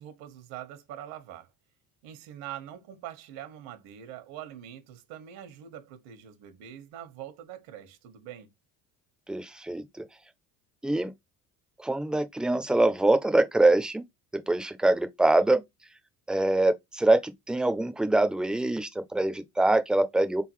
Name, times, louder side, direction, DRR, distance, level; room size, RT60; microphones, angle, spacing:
voice 1, 0.0-1.5 2.0-8.5, right 11 dB, 80° right, 1.3 m, -43 dB
voice 2, 9.3-9.8 10.8-11.1 11.8-14.0 14.3-15.6 16.3-20.4, right 2 dB, ahead, 0.4 m, -24 dB
4.0 x 3.7 x 3.0 m
cardioid pair, 160°, 34 cm